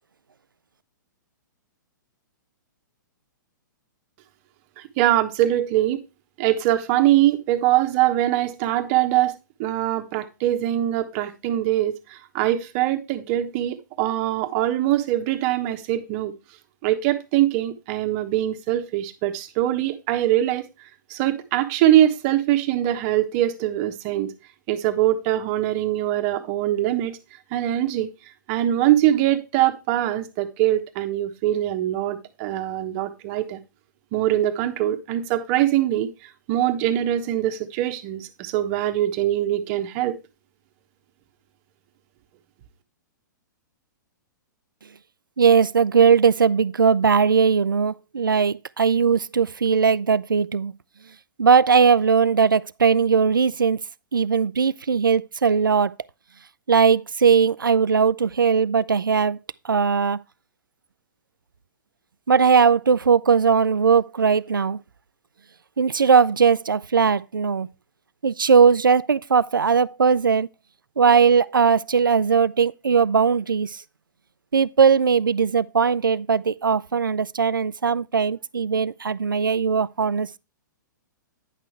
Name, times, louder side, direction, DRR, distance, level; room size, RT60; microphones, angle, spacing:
voice 1, 4.8-6.0 6.4-16.3 16.8-24.3 24.7-27.2 27.5-28.1 28.5-33.6 34.1-40.2, right 13 dB, 40° right, 1.1 m, -23 dB
voice 2, 45.4-50.7 51.4-53.8 54.1-55.9 56.7-59.4 59.7-60.2 62.3-64.8 65.8-67.7 68.2-70.5 71.0-73.8 74.5-80.4, right 6 dB, 85° right, 0.4 m, -19 dB
9.8 x 6.2 x 3.2 m
figure-of-eight pair, 115°, 11 cm